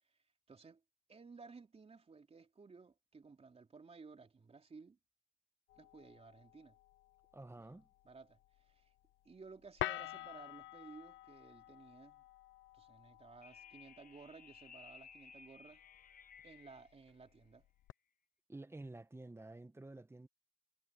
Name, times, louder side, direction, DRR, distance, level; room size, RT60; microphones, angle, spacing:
voice 1, 0.5-0.8 1.1-5.0 5.8-6.8 7.6-7.7 8.0-8.9 9.3-12.2 12.7-15.8 16.4-17.7, right 4 dB, 30° right, 3.4 m, -57 dB
sound 1, 5.7-17.9, left 15 dB, 75° left, 0.8 m, -50 dB
voice 2, 7.3-7.9 18.5-20.3, right 2 dB, 10° right, 1.4 m, -51 dB
sound 2, 13.4-16.9, left 6 dB, 45° left, 1.5 m, -58 dB
cardioid pair, 90°, 20 cm